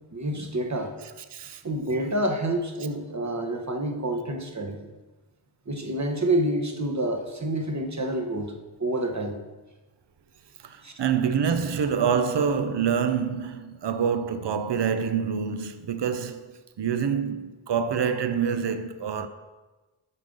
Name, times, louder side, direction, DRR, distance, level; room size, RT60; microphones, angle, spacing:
voice 1, 0.1-0.9 1.6-4.8 5.7-8.5 8.8-9.4 10.8-10.9, right 1 dB, 35° right, 1.1 m, -28 dB
voice 2, 1.3-1.6 10.6-16.5 16.8-19.3, right 7 dB, 60° right, 0.7 m, -26 dB
11.0 x 3.8 x 5.4 m
wide cardioid pair, 55°, 48 cm